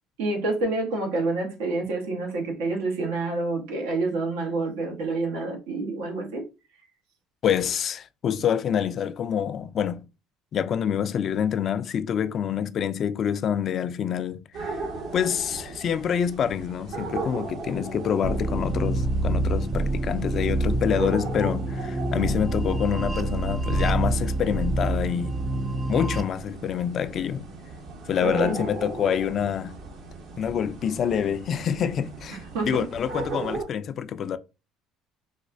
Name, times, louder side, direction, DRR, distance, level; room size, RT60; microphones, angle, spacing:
voice 1, 0.2-6.4 28.2-28.5 32.3-32.9, right 2 dB, 85° right, 1.2 m, -28 dB
voice 2, 7.4-10.1 10.5-14.8 15.1-25.4 25.9-27.5 28.1-29.7 30.4-32.4 32.6-34.4, left 8 dB, 50° left, 0.4 m, -26 dB
sound 1, 14.5-33.6, right 3 dB, 65° right, 1.3 m, -37 dB
sound 2, 18.2-26.2, right 2 dB, 35° right, 0.5 m, -27 dB
4.1 x 2.3 x 2.6 m
supercardioid pair, 75°, 0 cm